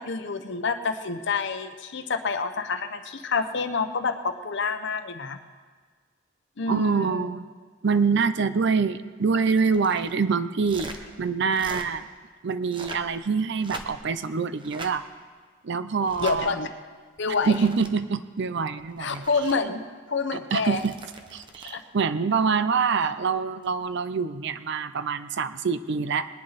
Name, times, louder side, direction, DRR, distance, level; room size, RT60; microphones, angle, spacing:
voice 1, 0.0-5.4 6.6-7.3 16.2-16.7 17.2-17.6 19.0-20.8 21.7-21.8, left 4 dB, 65° left, 8 dB, 0.9 m, -28 dB
voice 2, 6.7-7.5 7.8-12.1 12.4-15.0 15.6-16.5 17.5-19.2 20.5-20.9 21.3-26.3, right 5 dB, 60° right, 13 dB, 0.6 m, -25 dB
sound 1, 9.4-10.1 10.6-11.0 11.5-11.9 12.6-13.1 13.5-14.1 14.6-14.9 16.0-16.4 17.2-17.9 18.8-19.5 20.6-21.8 23.6-23.8, right 2 dB, 25° right, 1.0 m, -42 dB
20.0 x 11.0 x 4.1 m, 1.6 s
head